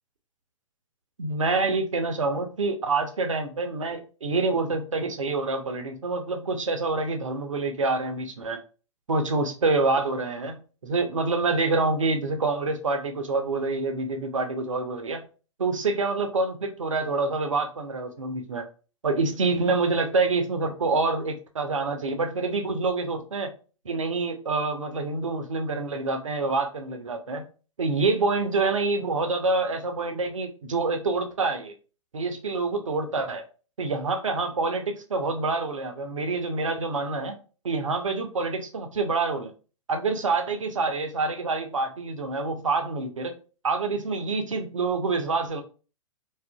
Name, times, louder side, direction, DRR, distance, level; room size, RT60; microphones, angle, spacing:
voice 1, 1.2-8.6 9.1-15.2 15.6-18.6 19.0-23.5 23.8-27.4 27.8-31.7 32.1-33.4 33.8-37.4 37.6-39.5 39.9-43.3 43.6-45.6, right 3 dB, 70° right, 0.6 m, -27 dB
2.7 x 2.5 x 2.2 m
figure-of-eight pair, 110°, 17 cm